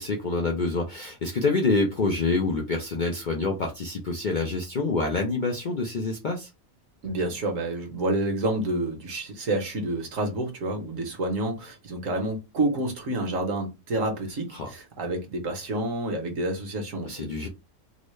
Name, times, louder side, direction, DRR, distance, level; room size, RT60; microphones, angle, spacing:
voice 1, 0.0-6.5 14.5-14.7 17.0-17.5, left 3 dB, 65° left, 0.4 m, -27 dB
voice 2, 7.0-17.5, right 2 dB, 65° right, 1.3 m, -29 dB
3.8 x 2.1 x 3.1 m
omnidirectional pair, 1.5 m